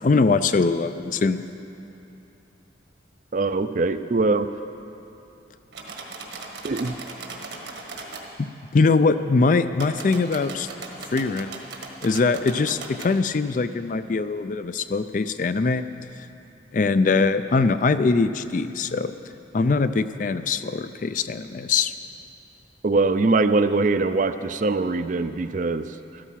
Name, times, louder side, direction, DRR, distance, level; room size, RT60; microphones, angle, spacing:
voice 1, 0.0-1.4 8.4-8.5 8.7-10.7 11.1-11.5 12.0-15.8 16.7-19.1 19.5-21.9, left 4 dB, 45° left, 12 dB, 0.4 m, -22 dB
voice 2, 3.3-4.5 6.6-6.9 22.8-25.9, right 3 dB, 40° right, 11 dB, 0.4 m, -22 dB
sound 1, 5.7-8.3 9.7-13.1, right 3 dB, 70° right, 1.6 m, -38 dB
13.5 x 12.5 x 5.8 m, 2.9 s
head